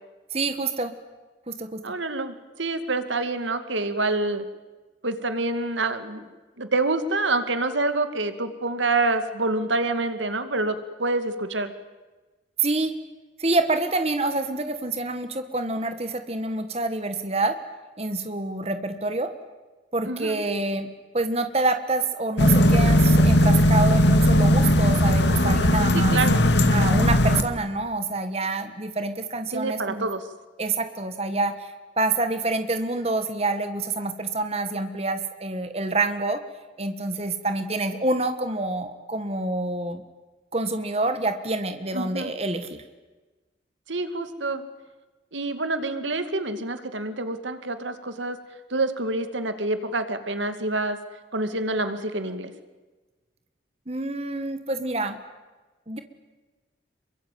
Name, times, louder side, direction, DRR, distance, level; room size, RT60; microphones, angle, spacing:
voice 1, 0.3-0.9 1.5-1.8 12.6-12.9 13.4-17.6 18.0-19.3 19.9-20.9 21.1-26.2 26.7-30.1 30.6-36.4 36.8-40.0 40.5-42.8 53.9-55.2 55.9-56.0, right 2 dB, 35° right, 8 dB, 1.6 m, -27 dB
voice 2, 1.8-4.4 5.0-6.3 6.6-11.7 20.0-20.4 25.9-26.5 29.5-30.2 41.9-42.3 43.9-44.6 45.3-48.4 48.7-51.0 51.3-52.5, right 2 dB, 85° right, 9 dB, 2.4 m, -27 dB
sound 1, 22.4-27.4, equal, 70° left, 2.2 m, -18 dB
27.5 x 23.0 x 9.4 m, 1.2 s
head